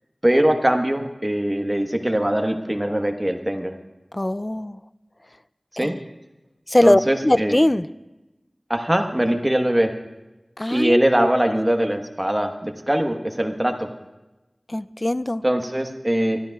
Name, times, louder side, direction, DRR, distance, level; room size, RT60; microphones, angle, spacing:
voice 1, 0.2-3.7 5.7-5.9 6.8-7.6 8.7-9.9 10.7-13.9 15.4-16.4, right 1 dB, 20° right, 4 dB, 1.2 m, -21 dB
voice 2, 4.1-4.8 5.8-6.0 6.7-7.9 10.6-11.3 14.7-15.4, left 1 dB, 30° left, 15 dB, 0.4 m, -21 dB
24.0 x 13.0 x 2.4 m, 1.0 s
wide cardioid pair, 50°, 0 cm